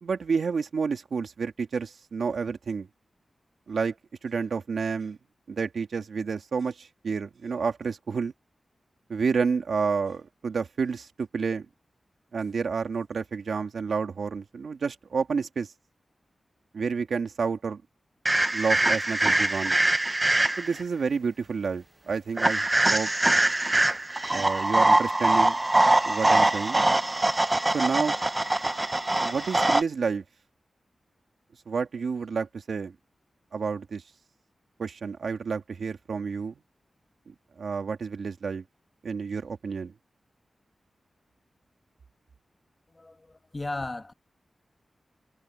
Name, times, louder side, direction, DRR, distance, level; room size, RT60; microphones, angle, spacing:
voice 1, 0.0-2.9 3.7-4.0 4.2-5.2 5.5-8.3 9.1-11.7 12.3-15.7 16.7-17.8 18.5-19.7 20.6-23.1 24.3-25.6 26.0-26.8 27.7-28.2 29.2-30.2 31.7-33.0 33.5-34.0 34.8-36.6 37.3-38.6 39.0-39.9, right 5 dB, 75° right, 2.3 m, -30 dB
sound 1, 18.3-20.8 22.4-29.8, right 2 dB, 20° right, 0.8 m, -23 dB
voice 2, 43.0-44.1, left 2 dB, 25° left, 1.9 m, -35 dB
wide cardioid pair, 120°, 0 cm